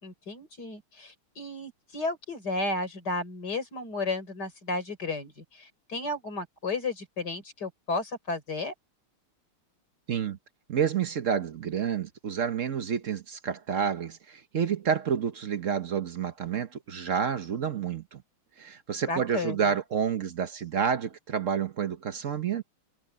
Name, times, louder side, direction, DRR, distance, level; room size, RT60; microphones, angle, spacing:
voice 1, 0.0-8.7 19.1-19.7, left 2 dB, 50° left, 5.2 m, -33 dB
voice 2, 10.1-10.4 10.7-18.2 18.6-22.6, right 7 dB, 50° right, 0.9 m, -29 dB
omnidirectional pair, 2.4 m